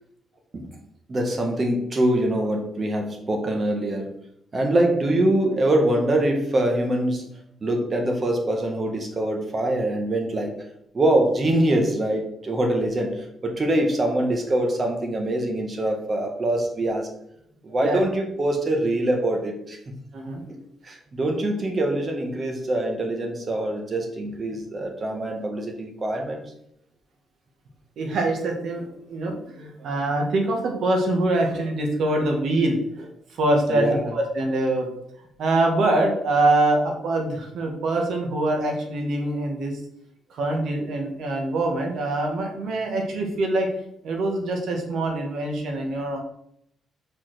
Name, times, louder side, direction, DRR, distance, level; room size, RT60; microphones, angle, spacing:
voice 1, 1.1-4.1 4.5-7.3 7.6-10.5 10.9-17.1 17.6-20.0 20.5-26.4 33.7-34.1, right 1 dB, 35° right, 3 dB, 1.8 m, -24 dB
voice 2, 28.0-34.9 35.4-39.8 40.3-43.7 44.0-46.2, right 2 dB, 70° right, 2 dB, 1.8 m, -24 dB
5.7 x 5.0 x 6.3 m, 0.75 s
cardioid pair, 90°, 0 cm